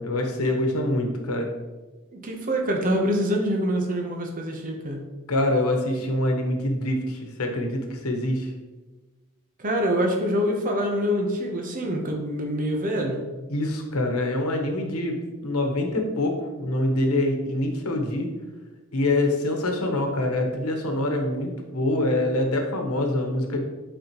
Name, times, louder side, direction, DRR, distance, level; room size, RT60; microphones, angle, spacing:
voice 1, 0.0-1.5 5.3-8.5 13.5-18.3 18.9-23.6, left 1 dB, 85° left, 3 dB, 1.1 m, -25 dB
voice 2, 2.1-5.0 9.6-13.2, equal, 40° right, 1 dB, 0.9 m, -25 dB
8.1 x 4.2 x 3.0 m, 1.2 s
head